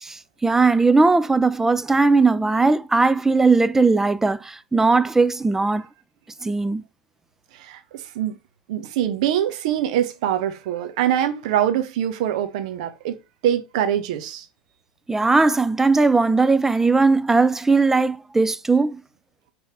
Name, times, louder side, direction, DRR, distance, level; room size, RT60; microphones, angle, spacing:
voice 1, 0.0-5.9 6.4-6.8 15.1-19.0, right 3 dB, 10° right, 0.5 m, -18 dB
voice 2, 7.5-8.4 8.7-13.2 13.4-14.5, right 10 dB, 60° right, 1.2 m, -24 dB
5.7 x 3.6 x 4.6 m
figure-of-eight pair, 85°, 4 cm